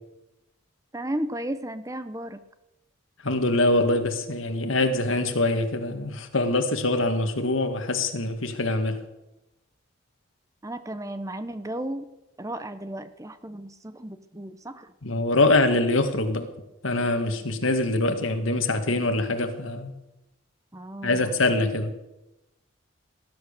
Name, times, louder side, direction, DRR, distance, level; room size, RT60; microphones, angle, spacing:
voice 1, 0.9-2.4 10.6-12.1 12.4-14.9 20.7-21.3, right 1 dB, 15° right, 11 dB, 0.8 m, -34 dB
voice 2, 3.2-9.0 15.0-16.5 16.8-19.9 21.0-21.9, left 2 dB, 80° left, 7 dB, 2.0 m, -24 dB
18.5 x 11.0 x 6.8 m, 0.95 s
head